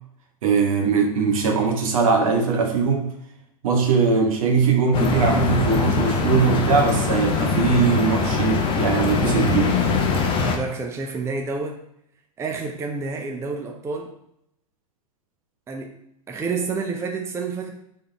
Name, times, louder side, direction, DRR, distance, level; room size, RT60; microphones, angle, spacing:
voice 1, 0.4-3.1 3.6-9.8, right 5 dB, 65° right, 2 dB, 1.1 m, -20 dB
sound 1, 4.9-10.6, left 4 dB, 25° left, 0.7 m, -22 dB
voice 2, 10.4-11.8 12.4-14.1 15.7-16.0 16.3-17.7, right 4 dB, 15° right, 3 dB, 0.5 m, -29 dB
3.6 x 3.5 x 3.9 m, 0.77 s
figure-of-eight pair, 100°, 19 cm